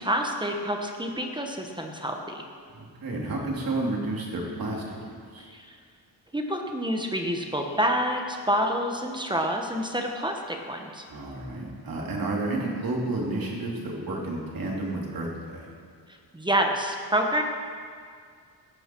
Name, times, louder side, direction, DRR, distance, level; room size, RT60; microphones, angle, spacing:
voice 1, 0.0-2.4 5.5-5.7 6.3-11.0 16.3-17.4, equal, 10° right, 3 dB, 1.1 m, -28 dB
voice 2, 2.7-5.5 11.1-15.6, right 2 dB, 55° right, -2 dB, 3.1 m, -31 dB
16.5 x 14.0 x 4.5 m, 2.1 s
wide cardioid pair, 165°, 42 cm